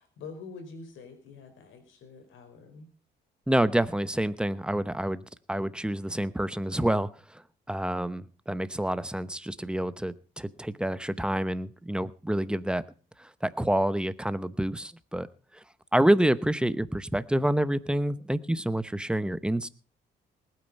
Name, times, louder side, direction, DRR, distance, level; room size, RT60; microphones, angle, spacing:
voice 1, 0.0-2.9, left 4 dB, 80° left, 7 dB, 4.6 m, -46 dB
voice 2, 3.5-7.4 7.7-12.8 13.2-15.3 15.5-15.6 15.9-19.7, right 1 dB, 5° right, 14 dB, 0.9 m, -28 dB
19.5 x 9.2 x 5.4 m, 0.37 s
cardioid pair, 90°, 20 cm